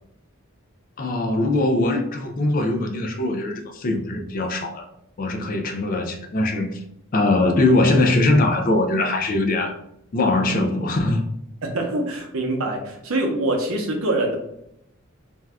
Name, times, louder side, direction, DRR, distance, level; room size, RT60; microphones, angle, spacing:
voice 1, 1.0-4.9 5.2-6.8 7.1-9.8 10.1-11.2, left 2 dB, 40° left, 0.4 m, -21 dB
voice 2, 11.6-14.4, right 2 dB, 80° right, 0.7 m, -24 dB
2.6 x 2.3 x 3.3 m
head